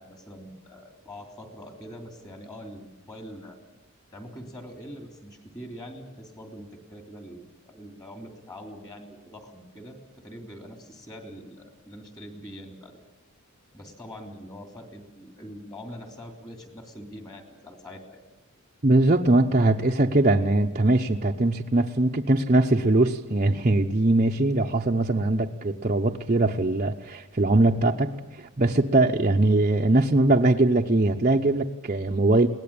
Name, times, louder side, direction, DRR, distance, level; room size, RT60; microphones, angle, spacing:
voice 1, 0.0-3.6 4.1-13.0 13.7-18.2, equal, 20° left, 3.2 m, -43 dB
voice 2, 18.8-32.5, right 2 dB, 35° right, 0.8 m, -21 dB
22.0 x 18.5 x 8.8 m
head